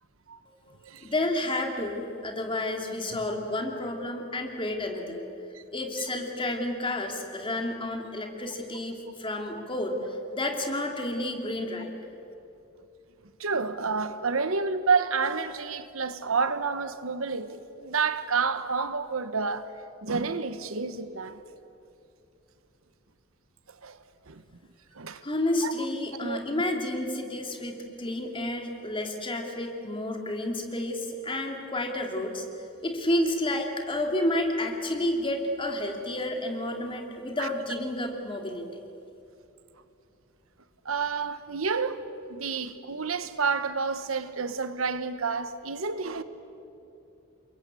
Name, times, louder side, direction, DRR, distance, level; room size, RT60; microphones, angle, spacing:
voice 1, 1.0-5.2 5.7-11.9 25.2-32.5 32.8-38.8, left 1 dB, 25° left, 2.9 m, -30 dB
voice 2, 13.4-19.7 20.0-21.4 23.8-24.0 24.3-24.4 24.9-25.2 25.6-25.7 26.2-26.4 37.4-37.5 40.8-42.0 42.3-46.2, right 5 dB, 75° right, 1.2 m, -29 dB
28.5 x 22.5 x 8.4 m
head